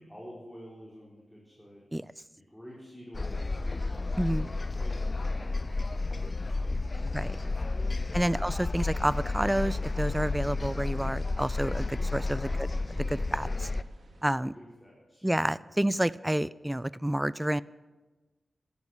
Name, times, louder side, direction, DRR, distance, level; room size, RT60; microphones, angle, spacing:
voice 1, 0.1-2.0 2.5-7.0 12.6-13.0 14.5-15.3 15.6-15.9, equal, 5° left, -5 dB, 4.7 m, -51 dB
sound 1, 3.1-13.8, left 3 dB, 35° left, 0.7 m, -31 dB
voice 2, 4.2-4.5 7.1-7.4 8.1-12.7 13.1-13.7 14.2-14.5 15.2-17.6, right 1 dB, 10° right, 19 dB, 0.5 m, -29 dB
sound 2, 8.9-14.4, right 2 dB, 65° right, 2.6 m, -52 dB
14.0 x 12.5 x 8.1 m, 1.2 s
cardioid pair, 60°, 0 cm